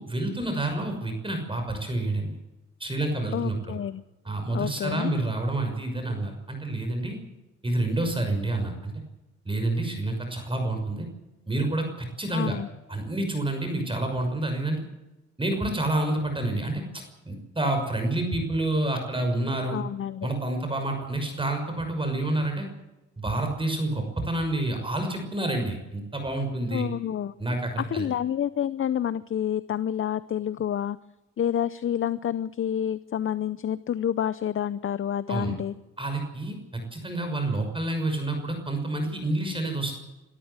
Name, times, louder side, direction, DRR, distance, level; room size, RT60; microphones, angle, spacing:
voice 1, 0.0-2.4 2.8-3.8 4.2-7.2 7.6-8.9 9.5-11.1 11.5-12.6 12.9-14.8 15.4-19.8 20.2-22.7 23.2-26.9 27.4-28.1 35.3-35.5 36.0-39.9, right 2 dB, 15° right, 4 dB, 6.1 m, -28 dB
voice 2, 3.3-4.0 4.5-5.1 12.3-12.7 19.7-20.3 26.7-27.3 27.8-31.0 31.4-35.7, left 9 dB, 45° left, 17 dB, 0.7 m, -28 dB
25.0 x 13.5 x 8.1 m, 1.0 s
cardioid pair, 90°, 30 cm